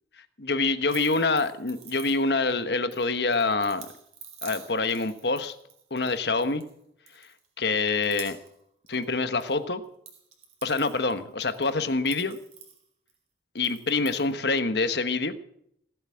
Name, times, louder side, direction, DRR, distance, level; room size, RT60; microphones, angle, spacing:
voice 1, 0.4-3.9 4.4-5.5 5.9-6.6 7.2-7.3 7.6-8.4 8.9-9.8 10.6-12.4 13.5-15.3, left 3 dB, 65° left, 10 dB, 1.2 m, -26 dB
sound 1, 0.9-2.5 2.9-6.7 7.1-7.6 8.0-9.5 9.8-13.1 13.6-14.3, right 7 dB, 35° right, 3.0 m, -48 dB
18.5 x 8.2 x 8.6 m, 0.72 s
head